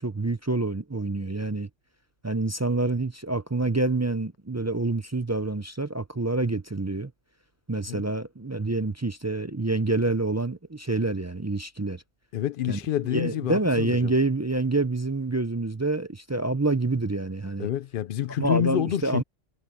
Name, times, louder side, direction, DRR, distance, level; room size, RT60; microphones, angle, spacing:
voice 1, 0.0-1.7 2.2-7.1 7.7-12.0 12.7-12.8 13.1-17.7 18.4-19.2, right 2 dB, 25° right, 0.3 m, -27 dB
voice 2, 12.3-14.1 17.6-19.2, left 10 dB, 60° left, 0.6 m, -28 dB
omnidirectional pair, 1.3 m